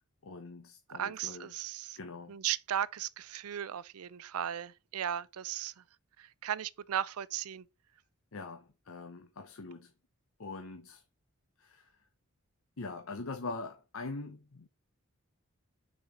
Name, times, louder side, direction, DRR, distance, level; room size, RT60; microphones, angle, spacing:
voice 1, 0.0-1.5 2.0-2.4 8.3-9.9 10.4-11.0 11.6-12.1 12.8-14.7, left 3 dB, 70° left, 0.8 m, -43 dB
voice 2, 0.9-2.0 2.3-5.8 6.2-7.7, right 10 dB, 85° right, 0.5 m, -36 dB
6.4 x 4.3 x 4.4 m
head